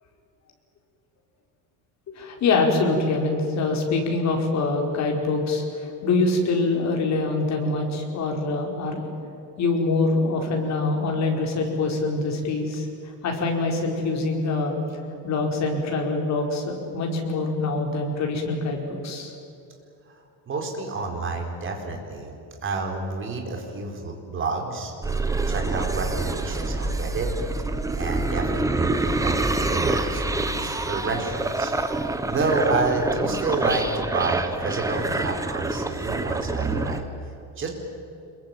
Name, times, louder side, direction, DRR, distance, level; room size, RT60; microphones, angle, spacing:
voice 1, 2.1-9.1 9.6-12.9 13.2-14.8 15.2-19.3, left 3 dB, 40° left, 1 dB, 5.0 m, -24 dB
voice 2, 20.5-22.3 22.6-24.9 25.5-27.3 27.9-31.7 32.3-37.0 37.6-37.7, right 3 dB, 30° right, 2 dB, 4.5 m, -29 dB
sound 1, 25.0-37.0, right 2 dB, 10° right, 1.1 m, -26 dB
26.5 x 22.5 x 9.1 m, 2.8 s
cardioid pair, 170°, 40 cm